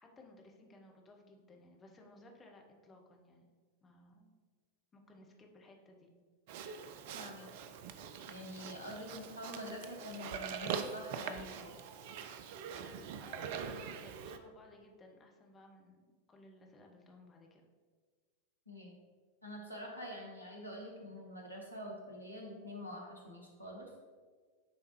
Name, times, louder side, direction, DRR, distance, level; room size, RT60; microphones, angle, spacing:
voice 1, 0.0-3.4 3.8-4.3 4.9-6.1 13.2-16.0 16.3-17.6, left 2 dB, 20° left, 1 dB, 0.9 m, -58 dB
Livestock farm animals working animals, 6.5-14.4, right 7 dB, 50° right, 0.4 m, -43 dB
voice 2, 7.1-7.5 8.3-11.8 18.7-18.9 19.4-23.9, equal, 90° left, -2 dB, 1.1 m, -46 dB
9.2 x 3.3 x 3.0 m, 1.5 s
figure-of-eight pair, 90°, 0 cm